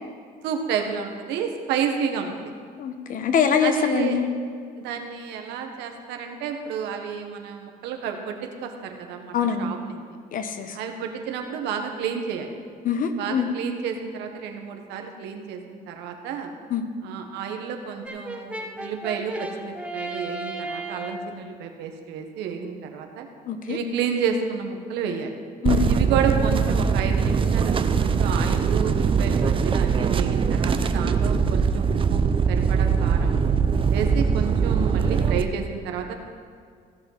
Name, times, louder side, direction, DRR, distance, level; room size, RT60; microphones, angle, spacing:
voice 1, 0.4-2.5 3.6-4.2 4.8-10.0 10.7-12.5 13.2-16.5 17.0-23.3 23.7-25.3 25.9-32.2 32.5-33.3 33.9-36.1, right 7 dB, 90° right, 4 dB, 1.4 m, -30 dB
voice 2, 2.8-4.3 9.3-9.8 10.3-10.8 12.8-13.5 16.7-16.8 23.5-23.8 25.6-25.9, left 7 dB, 55° left, 8 dB, 1.1 m, -24 dB
Brass instrument, 18.1-21.4, right 2 dB, 5° right, 1.1 m, -34 dB
sound 1, 25.7-35.4, right 6 dB, 30° right, 0.6 m, -21 dB
16.5 x 5.9 x 5.8 m, 2.1 s
cardioid pair, 110°, 17 cm